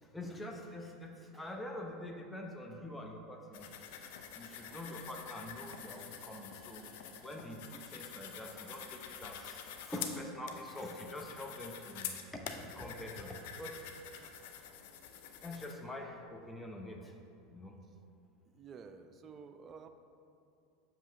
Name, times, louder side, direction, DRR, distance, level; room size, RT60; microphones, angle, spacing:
voice 1, 0.0-3.7 4.4-6.9 7.2-13.8 15.4-17.1 17.5-17.7, left 1 dB, 10° left, 1 dB, 0.7 m, -45 dB
sound 1, 3.5-15.7, left 8 dB, 70° left, 0.6 m, -47 dB
voice 2, 18.5-19.9, right 5 dB, 35° right, 7 dB, 0.4 m, -51 dB
7.2 x 3.0 x 5.6 m, 2.6 s
hypercardioid pair, 100°, 0 cm